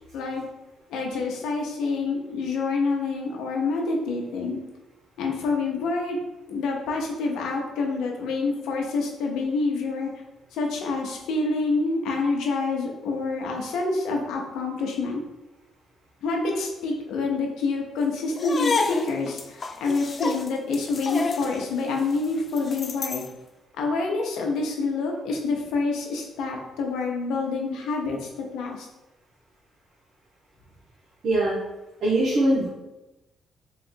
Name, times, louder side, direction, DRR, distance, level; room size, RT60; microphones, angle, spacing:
voice 1, 0.1-0.5 0.9-4.6 5.2-6.2 6.5-10.1 10.5-15.2 16.2-23.2 23.8-28.9, left 3 dB, 85° left, 0 dB, 0.7 m, -27 dB
sound 1, 18.3-23.3, left 4 dB, 40° left, 0.4 m, -30 dB
voice 2, 31.2-31.6 32.0-32.7, right 1 dB, 65° right, -6 dB, 1.1 m, -21 dB
3.7 x 2.5 x 4.4 m, 0.99 s
cardioid pair, 90°, 0 cm